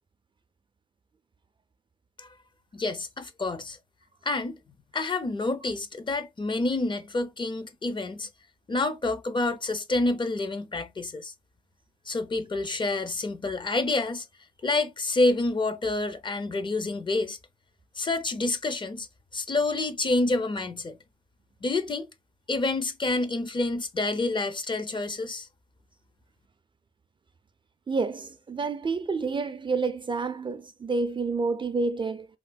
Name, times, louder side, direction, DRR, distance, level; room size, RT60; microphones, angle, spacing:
voice 1, 2.7-3.8 4.2-4.6 4.9-8.3 8.7-11.3 12.1-14.3 14.6-17.4 18.0-19.1 19.3-21.0 21.6-22.1 22.5-25.5, left 2 dB, 30° left, 0.5 m, -28 dB
voice 2, 27.9-32.3, right 4 dB, 30° right, 0.3 m, -29 dB
3.5 x 2.7 x 2.3 m
wide cardioid pair, 145°, 16 cm